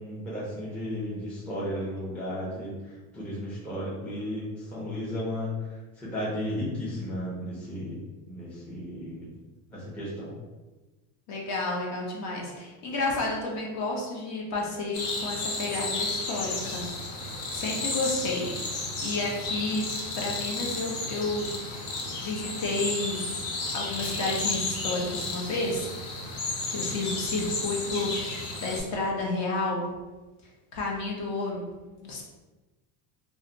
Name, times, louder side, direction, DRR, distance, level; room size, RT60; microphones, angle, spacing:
voice 1, 0.0-2.7 3.1-5.5 6.0-8.0 8.3-9.3 9.7-10.3, equal, 5° left, -9 dB, 0.4 m, -34 dB
voice 2, 11.3-16.9 17.5-18.5 19.0-19.8 20.1-21.9 22.2-23.2 23.7-25.9 26.7-29.9 30.7-31.7 32.0-32.2, left 2 dB, 45° left, -2 dB, 0.7 m, -31 dB
sound 1, 14.9-28.8, left 2 dB, 85° left, 0.8 m, -33 dB
2.6 x 2.1 x 3.7 m, 1.2 s
cardioid pair, 170°, 40 cm